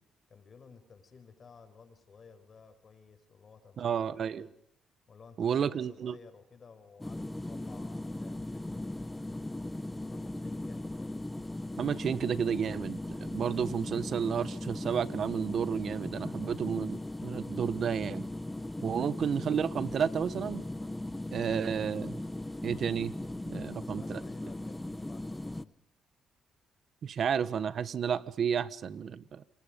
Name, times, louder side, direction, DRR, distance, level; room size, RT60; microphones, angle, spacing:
voice 1, 0.3-4.5 5.1-9.0 10.0-11.2 16.4-16.6 23.5-25.7, left 5 dB, 45° left, 8 dB, 5.7 m, -55 dB
voice 2, 3.8-4.5 5.4-6.2 11.8-18.2 18.8-20.6 21.3-22.2 22.6-23.1 23.5-24.2 27.0-29.4, right 7 dB, 55° right, 15 dB, 1.3 m, -31 dB
sound 1, 7.0-25.6, left 1 dB, 10° left, 0.9 m, -38 dB
28.5 x 25.5 x 5.3 m, 0.72 s
cardioid pair, 90°, 0 cm